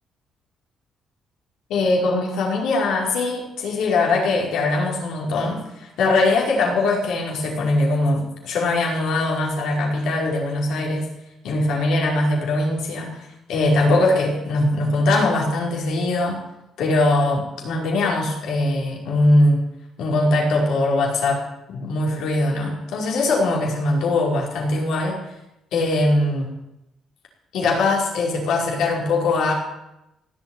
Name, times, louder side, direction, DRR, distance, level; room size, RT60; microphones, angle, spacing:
voice 1, 1.7-11.1 11.4-13.1 13.5-16.4 16.8-19.6 20.0-21.4 21.7-25.2 25.7-26.5 27.5-29.5, left 2 dB, 80° left, -1 dB, 5.2 m, -21 dB
17.0 x 8.9 x 9.3 m, 0.90 s
cardioid pair, 115°, 0 cm